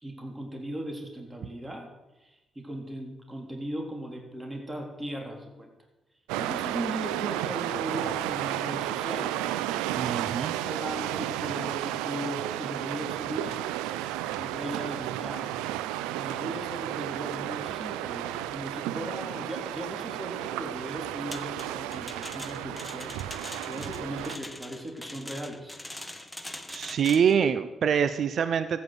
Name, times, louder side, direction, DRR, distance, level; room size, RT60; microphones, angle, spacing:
voice 1, 0.0-1.9 2.2-5.7 6.4-9.5 10.3-13.6 14.4-15.6 16.2-25.8, equal, 20° right, 2 dB, 3.7 m, -38 dB
sound 1, 6.3-24.4, right 13 dB, 90° right, 0.5 m, -33 dB
voice 2, 10.0-10.5 26.7-28.8, right 7 dB, 65° right, 12 dB, 0.8 m, -25 dB
sound 2, 21.3-27.4, left 1 dB, 5° left, 1.9 m, -42 dB
14.0 x 9.5 x 8.1 m, 1.1 s
supercardioid pair, 50°, 0 cm